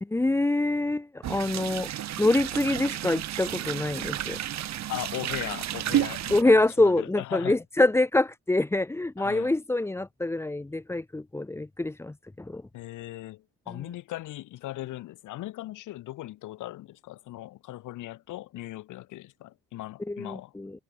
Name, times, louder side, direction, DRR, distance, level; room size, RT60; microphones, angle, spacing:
voice 1, 0.0-1.9 2.2-4.4 6.3-12.6 20.1-20.7, left 2 dB, 10° left, 0.6 m, -25 dB
sound 1, 1.2-6.4, right 12 dB, 65° right, 1.2 m, -31 dB
voice 2, 4.9-7.6 9.2-9.5 12.7-20.5, left 16 dB, 85° left, 1.7 m, -38 dB
cardioid pair, 90°, 30 cm